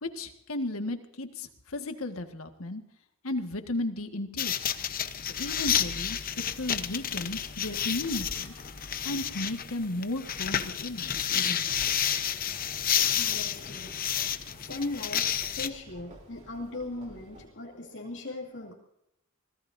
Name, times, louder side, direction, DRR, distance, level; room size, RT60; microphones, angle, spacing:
voice 1, 0.0-2.8 3.2-4.5 5.2-6.2 6.6-8.5 9.0-11.7, left 2 dB, 80° left, 6 dB, 1.8 m, -34 dB
sound 1, 4.4-15.7, left 9 dB, 45° left, 0.9 m, -30 dB
sound 2, 4.5-4.9 6.1-6.2 6.8-6.9 8.1-9.7, left 3 dB, 10° left, 5.5 m, -56 dB
sound 3, 11.6-17.5, right 1 dB, 35° right, 3.4 m, -52 dB
voice 2, 13.0-13.9 14.6-15.3 15.5-18.7, left 2 dB, 60° left, -3 dB, 2.8 m, -38 dB
25.5 x 18.0 x 2.7 m, 0.77 s
head